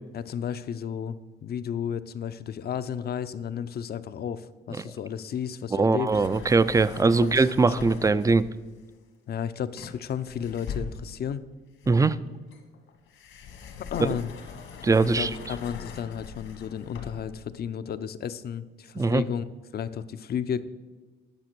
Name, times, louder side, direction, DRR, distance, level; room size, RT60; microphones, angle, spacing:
voice 1, 0.1-1.2 1.4-6.2 7.2-7.9 9.3-11.4 13.8-14.3 15.0-19.4 19.7-20.6, left 8 dB, 55° left, 13 dB, 0.6 m, -33 dB
voice 2, 5.7-8.4 11.9-12.2 14.8-15.3 19.0-19.2, right 3 dB, 15° right, 16 dB, 0.4 m, -21 dB
sound 1, 6.1-8.7 9.8-11.3 11.8-17.4, left 6 dB, 80° left, 1.7 m, -42 dB
10.5 x 6.0 x 6.0 m, 1.3 s
cardioid pair, 90°, 20 cm